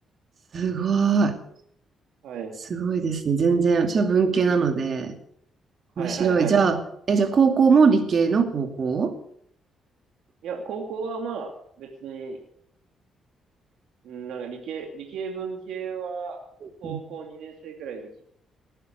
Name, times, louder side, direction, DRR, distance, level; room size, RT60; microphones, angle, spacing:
voice 1, 0.5-1.4 2.7-5.1 6.0-6.8 7.1-9.1 16.8-17.0, right 5 dB, 50° right, 6 dB, 2.6 m, -21 dB
voice 2, 2.2-2.6 4.3-4.6 6.0-6.6 10.4-11.5 11.8-12.4 14.0-16.4 16.8-18.2, right 6 dB, 85° right, 2 dB, 2.4 m, -34 dB
19.5 x 9.9 x 6.6 m, 0.69 s
cardioid pair, 105°, 0 cm